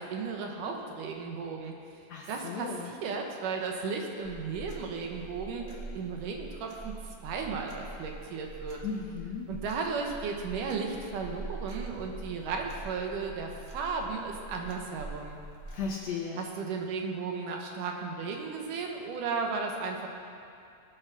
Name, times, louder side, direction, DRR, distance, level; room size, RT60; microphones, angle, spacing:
voice 1, 0.0-1.7 2.3-5.7 5.9-8.8 9.5-15.4 16.4-20.1, right 5 dB, 70° right, 2 dB, 2.5 m, -35 dB
voice 2, 2.1-2.9 8.8-9.5 15.7-16.5, left 5 dB, 65° left, -1 dB, 1.8 m, -36 dB
sound 1, 4.2-16.0, right 3 dB, 55° right, 0.4 m, -44 dB
18.5 x 6.7 x 6.0 m, 2.5 s
omnidirectional pair, 4.0 m